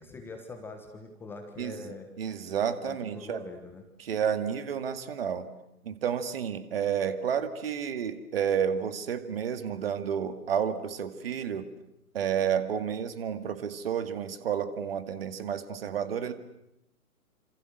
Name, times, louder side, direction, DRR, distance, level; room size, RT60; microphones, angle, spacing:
voice 1, 0.0-2.1 2.8-3.8, left 3 dB, 5° left, 5 dB, 1.2 m, -43 dB
voice 2, 1.6-1.9 2.2-3.4 4.0-5.5 5.8-11.7 12.1-16.3, right 8 dB, 40° right, 10 dB, 2.2 m, -31 dB
28.0 x 27.0 x 7.9 m, 0.86 s
figure-of-eight pair, 130°, 45 cm